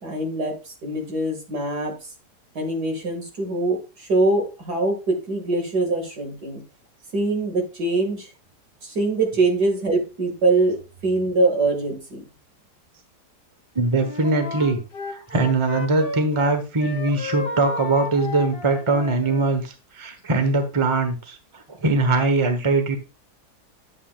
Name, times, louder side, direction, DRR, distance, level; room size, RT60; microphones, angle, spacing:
voice 1, 0.0-1.9 2.5-6.6 7.1-8.3 8.8-12.3, right 2 dB, 80° right, 2 dB, 2.7 m, -23 dB
voice 2, 13.7-14.8 15.1-23.0, right 3 dB, 20° right, 6 dB, 1.1 m, -22 dB
Wind instrument woodwind instrument, 13.9-16.5 16.8-19.5, left 3 dB, 40° left, 1.0 m, -33 dB
11.0 x 7.6 x 2.4 m, 0.30 s
omnidirectional pair, 1.7 m